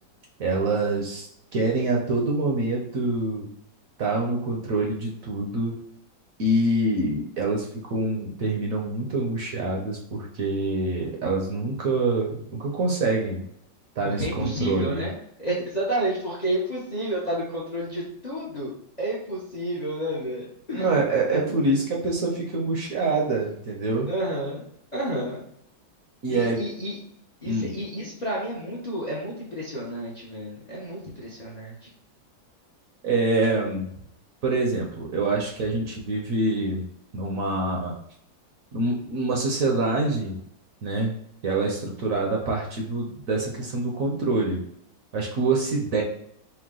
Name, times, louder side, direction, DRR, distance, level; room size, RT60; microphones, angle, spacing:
voice 1, 0.4-1.3 1.5-3.5 4.0-5.7 6.4-13.4 14.0-15.0 20.7-24.1 26.2-26.6 27.4-27.7 33.0-33.9 34.4-36.8 37.1-38.0 38.7-40.4 40.8-41.1 41.4-44.6 45.1-46.0, right 2 dB, 60° right, 0 dB, 1.0 m, -25 dB
voice 2, 14.0-18.7 19.0-21.0 21.3-21.6 24.1-24.6 24.9-25.4 26.3-27.0 27.4-31.9, right 1 dB, 35° left, -5 dB, 0.7 m, -30 dB
4.6 x 2.2 x 3.7 m, 0.70 s
omnidirectional pair, 2.0 m